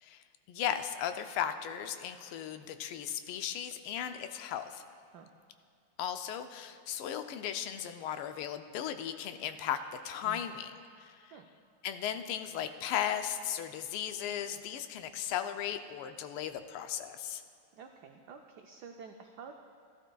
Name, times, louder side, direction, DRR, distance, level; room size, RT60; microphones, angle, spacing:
voice 1, 0.0-4.8 6.0-9.8 10.0-10.7 11.0-11.1 11.8-17.4, left 9 dB, 85° left, 9 dB, 1.5 m, -36 dB
voice 2, 17.8-19.5, right 6 dB, 90° right, 4 dB, 0.9 m, -49 dB
15.0 x 12.5 x 2.3 m, 2.4 s
omnidirectional pair, 2.4 m